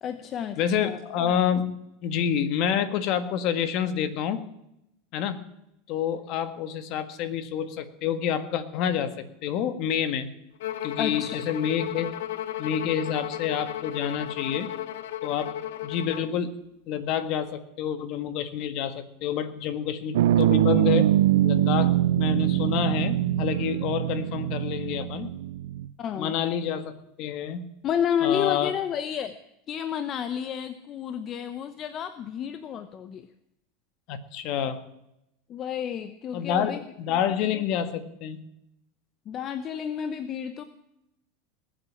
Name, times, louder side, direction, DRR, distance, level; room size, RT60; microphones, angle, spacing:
voice 1, 0.0-1.0 11.0-11.4 26.0-26.3 27.8-29.4 29.7-33.3 35.5-36.8 39.3-40.6, left 8 dB, 35° left, 11 dB, 0.9 m, -30 dB
voice 2, 0.6-1.7 2.0-4.4 5.1-5.4 5.9-10.3 10.8-12.1 12.6-14.7 15.2-15.5 15.8-16.5 16.9-21.1 21.4-25.3 26.2-27.6 28.2-28.7 34.1-34.8 36.3-38.4, left 8 dB, 50° left, 11 dB, 1.7 m, -28 dB
Bowed string instrument, 10.6-16.3, left 12 dB, 80° left, 0.9 m, -34 dB
sound 1, 20.1-25.9, right 13 dB, 85° right, 0.5 m, -23 dB
20.0 x 7.8 x 8.6 m, 0.85 s
supercardioid pair, 130°, 0 cm